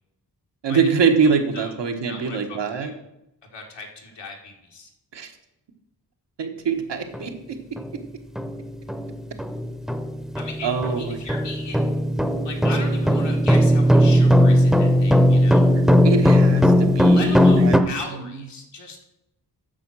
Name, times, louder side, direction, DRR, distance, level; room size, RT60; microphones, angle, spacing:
voice 1, 0.6-2.9 5.1-5.3 6.4-7.8 10.6-11.2 15.8-17.8 18.2-18.3, right 5 dB, 85° right, 4 dB, 1.4 m, -24 dB
voice 2, 1.2-1.7 2.1-3.0 3.5-4.9 10.3-10.7 11.0-12.0 12.4-15.7 17.1-19.0, left 3 dB, 90° left, 0 dB, 2.0 m, -37 dB
sound 1, 7.1-7.3 7.8-7.9 8.4-17.8, equal, ahead, 0.7 m, -18 dB
9.3 x 6.5 x 6.1 m, 0.87 s
wide cardioid pair, 95°, 41 cm